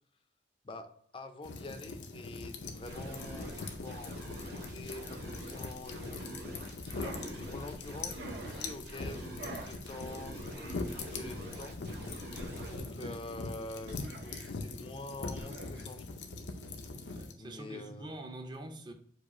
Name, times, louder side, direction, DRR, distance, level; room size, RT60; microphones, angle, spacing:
voice 1, 0.6-6.3 6.9-11.8 12.6-16.3 17.4-18.2, left 2 dB, 30° left, 0.4 m, -46 dB
sound 1, 1.4-17.3, left 3 dB, 90° left, 0.6 m, -42 dB
sound 2, 2.8-12.8, right 1 dB, 65° right, 1.2 m, -47 dB
sound 3, 7.0-7.4 8.2-8.7 9.4-9.8 10.5-11.1 12.3-13.0 13.9-14.5 15.3-15.8, right 2 dB, 80° right, 0.9 m, -47 dB
voice 2, 13.0-13.3 17.1-18.9, right 1 dB, 25° right, 0.5 m, -45 dB
4.8 x 2.4 x 4.2 m
head